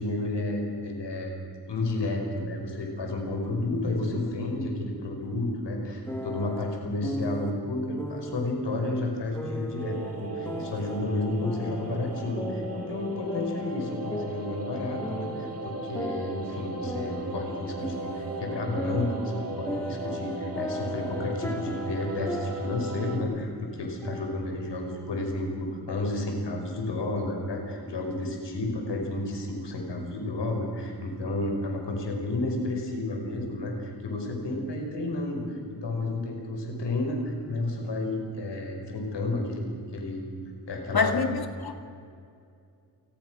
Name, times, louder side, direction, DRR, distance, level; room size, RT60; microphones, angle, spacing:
voice 1, 0.0-1.4 1.7-40.3 40.7-41.2, left 2 dB, 80° left, 2 dB, 5.5 m, -31 dB
sound 1, 6.1-7.5 8.0-8.5 9.3-11.0 11.4-13.0 13.3-15.5 15.9-18.4 18.7-22.9 23.1-23.5 24.0-25.0, equal, 5° left, 3.0 m, -37 dB
sound 2, 9.8-23.2, right 2 dB, 35° right, 3.7 m, -37 dB
voice 2, 40.9-41.7, left 5 dB, 60° left, 6 dB, 2.3 m, -26 dB
28.0 x 19.5 x 6.4 m, 2.4 s
wide cardioid pair, 95°, 41 cm